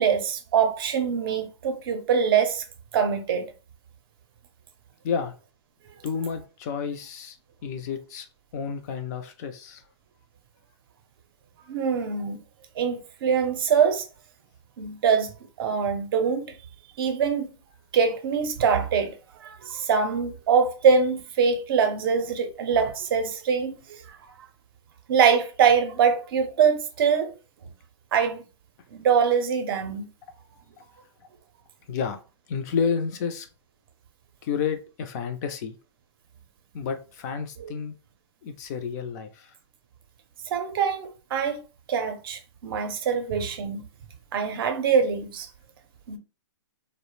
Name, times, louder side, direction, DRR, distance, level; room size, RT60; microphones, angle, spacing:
voice 1, 0.0-2.6 2.9-3.5 11.7-12.4 12.8-14.1 14.8-15.3 15.6-16.4 17.0-17.5 17.9-24.2 25.1-27.3 28.1-28.4 28.9-30.1 37.6-37.7 40.5-41.6 41.9-43.8 44.3-45.5 46.1-46.2, right 6 dB, 50° right, 0.5 m, -23 dB
voice 2, 6.0-7.4 7.6-8.3 8.5-9.8 31.9-32.2 32.5-33.5 34.4-35.8 36.7-37.9 38.4-39.5, left 6 dB, 35° left, 0.3 m, -30 dB
2.3 x 2.0 x 3.1 m
hypercardioid pair, 145°, 15 cm